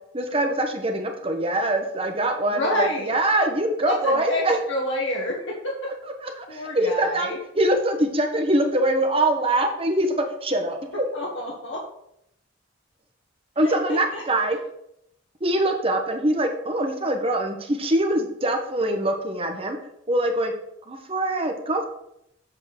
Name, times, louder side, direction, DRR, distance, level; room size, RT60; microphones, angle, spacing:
voice 1, 0.1-4.6 6.4-10.1 10.4-10.8 13.6-14.6 15.4-19.8 20.1-20.5 20.9-21.8, right 1 dB, 30° right, 4 dB, 1.3 m, -23 dB
voice 2, 2.4-3.1 3.8-4.4 4.7-5.9 6.5-7.4 11.1-11.9 13.6-14.2 14.5-14.6, left 1 dB, 85° left, -3 dB, 1.5 m, -28 dB
7.9 x 4.2 x 6.7 m, 0.77 s
head